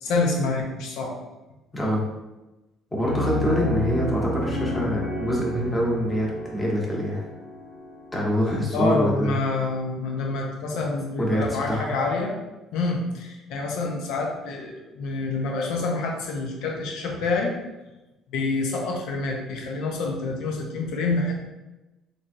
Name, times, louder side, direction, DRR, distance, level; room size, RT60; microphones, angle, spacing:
voice 1, 0.0-1.2 8.7-12.3 12.7-17.5 18.3-21.3, left 3 dB, 80° left, 0 dB, 0.8 m, -27 dB
voice 2, 2.9-7.2 8.1-9.4 11.2-12.0, equal, 15° left, -3 dB, 1.2 m, -25 dB
Piano, 3.0-8.6, equal, 45° left, 1.1 m, -31 dB
3.8 x 3.3 x 2.7 m, 1.0 s
cardioid pair, 105°, 0 cm